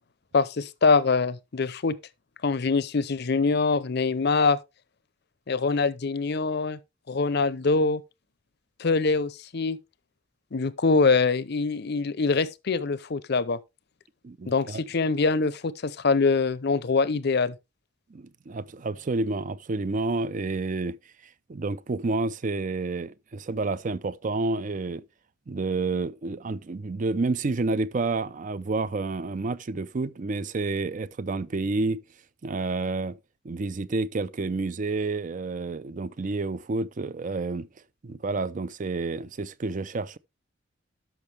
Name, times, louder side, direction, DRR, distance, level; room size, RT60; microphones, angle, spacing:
voice 1, 0.3-2.0 2.4-4.6 5.5-6.8 7.1-8.0 8.8-9.8 10.5-13.6 14.5-17.5, left 4 dB, 55° left, 0.6 m, -24 dB
voice 2, 14.2-14.8 18.1-21.0 21.5-25.0 25.5-32.0 32.4-33.2 33.4-37.7 38.0-40.2, right 3 dB, 40° right, 0.5 m, -29 dB
12.0 x 5.7 x 3.3 m
head